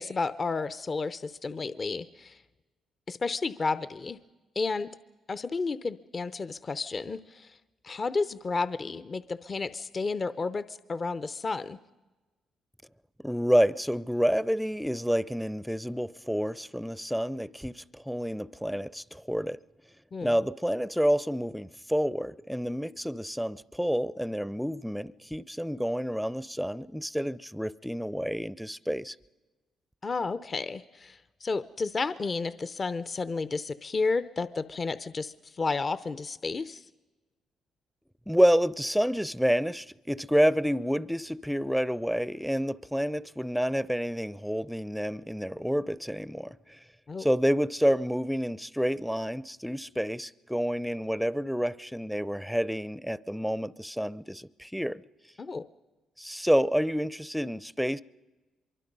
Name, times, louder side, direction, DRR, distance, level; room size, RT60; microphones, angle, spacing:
voice 1, 0.0-2.4 3.1-4.2 4.6-4.9 5.3-7.5 7.8-11.8 20.1-20.3 30.0-36.8 47.1-47.3 55.4-55.7, left 4 dB, 40° left, 0.7 m, -32 dB
voice 2, 13.2-19.6 20.2-29.1 38.3-46.8 47.2-55.0 56.2-58.0, equal, ahead, 0.6 m, -28 dB
24.5 x 23.5 x 5.4 m
cardioid pair, 75°, 0 cm